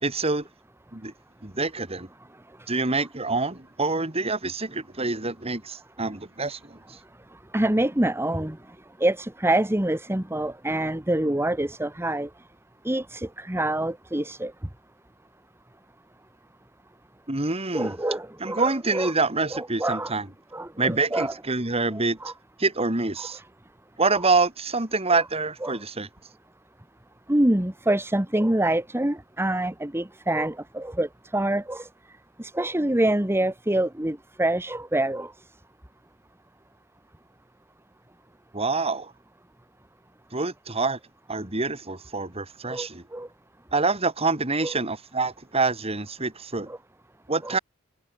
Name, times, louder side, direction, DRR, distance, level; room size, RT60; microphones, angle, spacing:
voice 1, 0.0-0.5 0.9-1.1 1.4-2.1 2.7-6.8 17.3-18.0 18.4-20.3 20.8-22.2 22.6-23.4 24.0-26.1 38.5-39.1 40.3-41.0 41.3-43.0 43.7-46.7 47.3-47.6, right 3 dB, 30° right, 2.5 m, -26 dB
voice 2, 7.5-8.6 9.0-12.3 12.8-14.5 17.7-19.1 19.5-20.1 20.5-21.3 21.9-22.3 23.2-23.3 25.1-25.2 25.6-25.8 27.3-31.9 32.4-35.3 42.7-43.3 44.6-44.7 46.7-46.8 47.4-47.6, right 1 dB, 10° right, 1.2 m, -26 dB
head